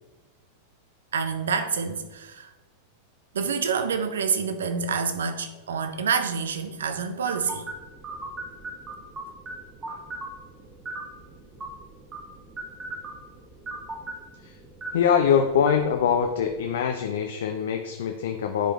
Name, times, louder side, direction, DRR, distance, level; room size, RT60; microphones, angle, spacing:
voice 1, 1.1-2.5 3.3-7.7 9.9-10.0, right 6 dB, 65° right, 8 dB, 0.7 m, -27 dB
sound 1, 7.3-16.8, right 2 dB, 20° right, 1.6 m, -39 dB
voice 2, 14.9-18.7, left 7 dB, 60° left, 5 dB, 0.6 m, -23 dB
10.0 x 5.1 x 3.5 m, 1.2 s
figure-of-eight pair, 90°, 0 cm